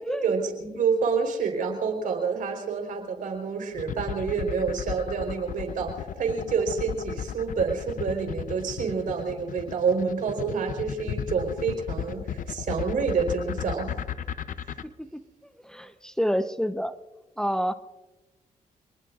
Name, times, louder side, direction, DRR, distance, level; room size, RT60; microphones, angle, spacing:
voice 1, 0.1-14.0 14.6-14.7, right 5 dB, 75° right, 3 dB, 4.2 m, -28 dB
sound 1, 3.8-14.8, left 9 dB, 70° left, 0.7 m, -34 dB
voice 2, 15.6-16.9 17.4-17.7, equal, 5° left, 9 dB, 0.8 m, -28 dB
28.0 x 20.0 x 2.5 m, 1.1 s
cardioid pair, 65°, 14 cm